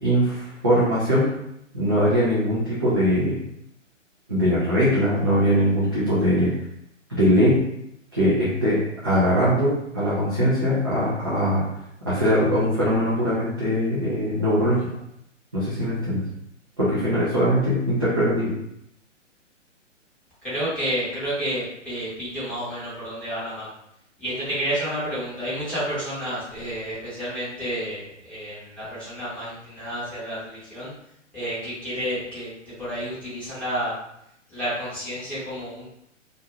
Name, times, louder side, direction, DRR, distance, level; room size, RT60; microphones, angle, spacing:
voice 1, 0.0-1.3 1.7-3.4 4.3-6.5 7.1-7.6 8.1-11.7 12.0-14.9 15.5-16.2 16.8-18.5, equal, 20° right, -11 dB, 0.4 m, -21 dB
voice 2, 20.4-23.7 24.2-30.9 31.3-32.5 32.8-33.9 34.5-35.9, equal, 5° left, -12 dB, 0.7 m, -30 dB
2.4 x 2.1 x 2.9 m, 0.77 s
figure-of-eight pair, 125°, 38 cm